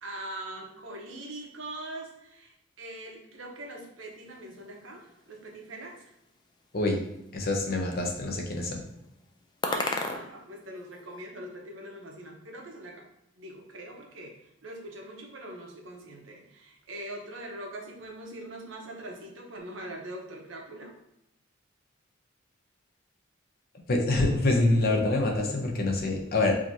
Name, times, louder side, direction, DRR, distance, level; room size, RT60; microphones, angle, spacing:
voice 1, 0.0-6.1 9.6-13.1 13.3-14.3 14.6-20.9, right 1 dB, 75° right, 0 dB, 0.9 m, -42 dB
sound 1, 4.0-11.2, left 3 dB, 20° left, 0.3 m, -39 dB
voice 2, 7.3-8.8 23.9-26.6, left 2 dB, 50° left, 1 dB, 0.7 m, -26 dB
4.8 x 2.8 x 2.7 m, 0.82 s
head